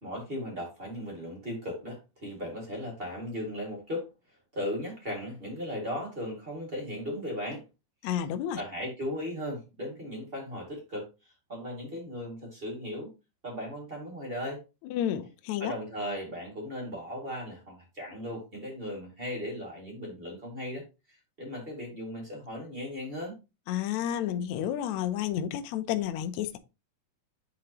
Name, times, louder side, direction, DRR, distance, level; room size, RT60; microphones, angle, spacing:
voice 1, 0.0-4.1 4.5-7.6 8.5-13.1 13.4-14.6 15.6-23.4, left 1 dB, 25° right, 1.6 m, -37 dB
voice 2, 8.0-8.6 14.9-15.7 23.7-26.6, left 10 dB, 80° left, 1.7 m, -31 dB
9.3 x 3.8 x 2.8 m
omnidirectional pair, 3.8 m